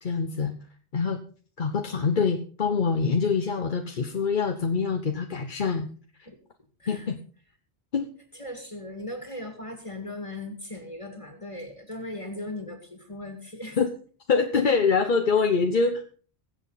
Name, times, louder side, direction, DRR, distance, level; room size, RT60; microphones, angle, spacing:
voice 1, 0.0-0.5 0.9-1.2 1.6-5.9 6.9-7.2 7.9-8.1 13.8-13.9 14.3-16.0, left 5 dB, 50° left, 5 dB, 1.0 m, -24 dB
voice 2, 8.3-13.9, left 1 dB, 30° left, 4 dB, 2.1 m, -38 dB
21.5 x 7.8 x 4.0 m, 0.42 s
omnidirectional pair, 1.2 m